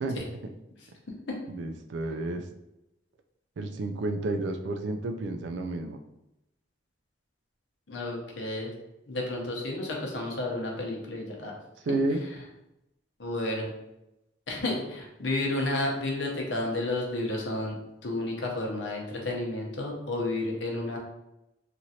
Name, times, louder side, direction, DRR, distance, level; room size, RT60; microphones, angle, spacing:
voice 1, 1.5-2.4 3.6-6.0 11.8-12.2, right 2 dB, 70° right, 6 dB, 0.4 m, -31 dB
voice 2, 7.9-8.7 9.1-11.5 11.9-12.0 13.2-13.7 14.5-21.0, left 2 dB, 75° left, 0 dB, 0.8 m, -31 dB
3.1 x 2.5 x 2.7 m, 0.89 s
head